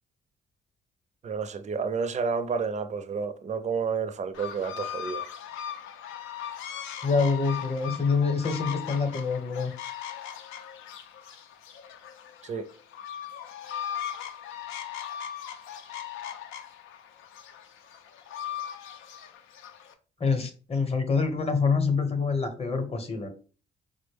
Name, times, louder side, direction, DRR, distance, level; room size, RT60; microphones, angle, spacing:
voice 1, 1.2-5.2 12.4-12.7, right 5 dB, 35° right, 0.5 m, -30 dB
sound 1, 4.3-19.9, left 9 dB, 85° left, 0.5 m, -39 dB
voice 2, 7.0-9.7 20.2-23.3, left 4 dB, 30° left, 0.8 m, -26 dB
4.0 x 2.1 x 3.3 m
cardioid pair, 90°, 20 cm